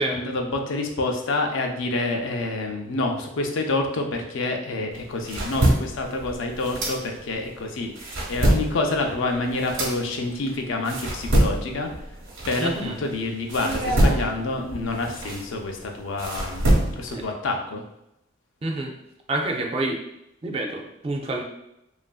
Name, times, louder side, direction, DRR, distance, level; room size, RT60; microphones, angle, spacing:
voice 1, 0.0-11.9 12.5-17.8, left 2 dB, 80° left, 3 dB, 0.5 m, -28 dB
sound 1, 4.9-7.5 7.8-13.1 13.5-17.2, right 1 dB, 85° right, 0.8 m, -25 dB
voice 2, 12.6-13.0 17.1-17.2 18.6-18.9 19.3-20.0 20.4-21.4, right 2 dB, 30° right, 2 dB, 0.3 m, -27 dB
2.9 x 2.4 x 2.3 m, 0.83 s
head